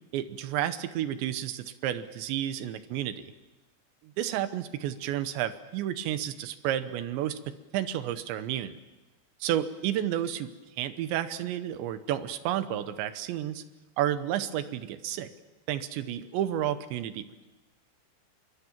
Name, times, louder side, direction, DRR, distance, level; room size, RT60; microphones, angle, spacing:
voice 1, 0.1-3.3 4.0-8.8 9.4-10.5 10.8-13.6 14.0-15.3 15.7-17.5, right 11 dB, 75° right, 11 dB, 2.9 m, -31 dB
26.0 x 23.0 x 7.3 m, 1.1 s
omnidirectional pair, 5.8 m